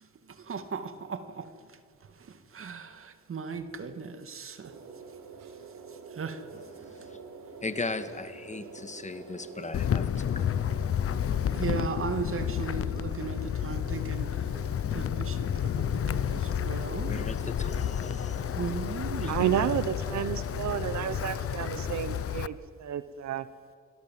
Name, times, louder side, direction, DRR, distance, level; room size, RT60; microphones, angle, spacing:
voice 1, 0.5-1.5 2.5-4.7 6.2-6.4 11.5-14.3 14.9-17.2 18.5-19.7, right 5 dB, 45° right, 2.5 m, -36 dB
sound 1, 4.6-22.0, right 5 dB, 80° right, 4.3 m, -46 dB
voice 2, 7.6-10.6 17.0-18.5 18.8-19.4, left 3 dB, 25° left, 2.0 m, -38 dB
Wind, 9.7-22.5, left 9 dB, 50° left, 0.9 m, -31 dB
voice 3, 19.3-23.5, right 10 dB, 65° right, 1.1 m, -31 dB
28.5 x 21.5 x 7.7 m
cardioid pair, 90°, 30 cm